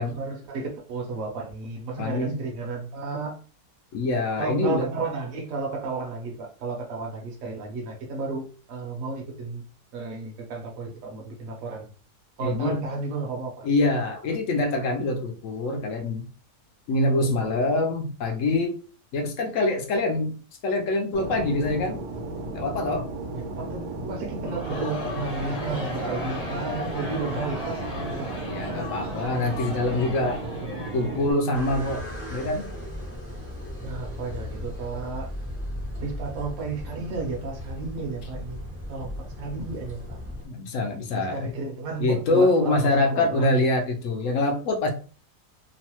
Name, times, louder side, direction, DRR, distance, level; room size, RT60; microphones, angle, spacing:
voice 1, 0.0-3.3 4.4-9.6 9.9-11.9 12.4-13.7 23.3-28.9 33.8-35.3 36.0-38.6 38.9-40.2 41.1-43.6, right 3 dB, 60° right, 0 dB, 1.0 m, -33 dB
voice 2, 2.0-2.4 3.9-4.9 12.4-12.8 13.6-16.3 16.9-18.8 19.1-20.4 20.6-22.0 22.5-23.1 28.4-30.4 30.9-32.0 32.3-32.7 40.5-41.5 42.0-44.9, left 2 dB, 70° left, 3 dB, 0.7 m, -25 dB
Fixed-wing aircraft airplane, 21.1-31.3, right 2 dB, 85° right, 1.2 m, -34 dB
Crowd, 24.4-31.7, left 1 dB, 40° left, 0.8 m, -36 dB
sound 1, 31.5-40.5, left 1 dB, 20° left, 0.4 m, -36 dB
3.0 x 2.0 x 2.9 m, 0.38 s
omnidirectional pair, 1.7 m